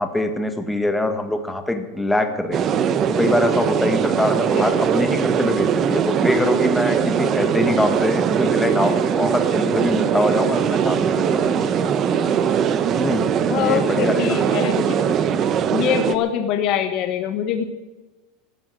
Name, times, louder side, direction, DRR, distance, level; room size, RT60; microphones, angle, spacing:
voice 1, 0.0-2.6 3.1-11.6 12.2-12.3 12.8-14.7, left 1 dB, 5° left, 6 dB, 1.5 m, -23 dB
sound 1, 2.5-16.2, right 8 dB, 30° right, 0.9 m, -21 dB
voice 2, 13.5-15.1 15.7-17.7, left 9 dB, 40° left, 6 dB, 1.3 m, -24 dB
13.5 x 12.5 x 7.6 m, 1.1 s
supercardioid pair, 160°, 0 cm